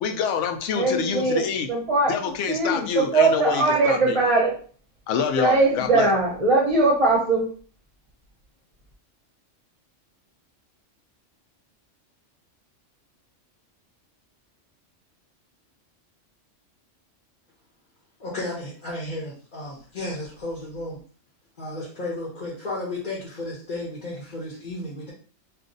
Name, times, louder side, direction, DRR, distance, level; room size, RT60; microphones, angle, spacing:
voice 1, 0.0-1.7 2.1-4.2 5.1-6.1, left 7 dB, 75° left, 5 dB, 0.9 m, -26 dB
voice 2, 0.8-1.4 1.7-2.1 2.5-4.5 5.4-7.4, right 3 dB, 35° right, -3 dB, 0.6 m, -20 dB
voice 3, 18.2-21.0 21.6-25.1, left 2 dB, 40° left, -5 dB, 1.0 m, -33 dB
2.5 x 2.4 x 3.8 m, 0.42 s
omnidirectional pair, 1.3 m